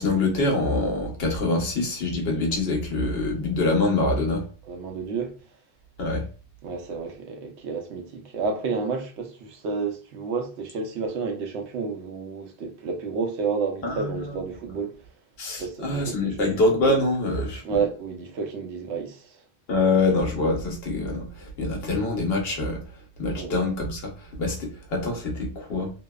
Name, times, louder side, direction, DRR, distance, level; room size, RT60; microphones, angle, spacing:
voice 1, 0.0-4.5 6.0-6.2 13.8-14.1 15.4-17.8 19.7-22.8 23.2-25.9, left 2 dB, 65° left, 1.0 m, -25 dB
voice 2, 4.7-5.4 6.6-15.1 15.6-16.5 17.6-19.4 23.4-23.5, right 5 dB, 90° right, 0.9 m, -30 dB
2.7 x 2.0 x 2.2 m
omnidirectional pair, 1.1 m